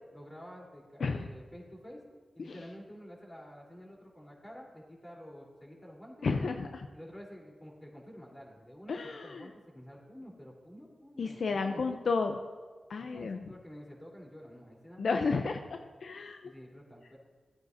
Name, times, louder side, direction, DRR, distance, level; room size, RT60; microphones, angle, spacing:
voice 1, 0.1-2.0 2.3-6.3 6.9-12.2 13.0-15.5 16.4-17.2, equal, 25° left, -3 dB, 3.6 m, -50 dB
voice 2, 6.2-6.9 8.9-9.5 11.2-12.4 12.9-13.4 15.0-16.4, left 4 dB, 75° left, 6 dB, 0.5 m, -32 dB
15.0 x 9.3 x 2.7 m, 1.4 s
cardioid pair, 45°, 0 cm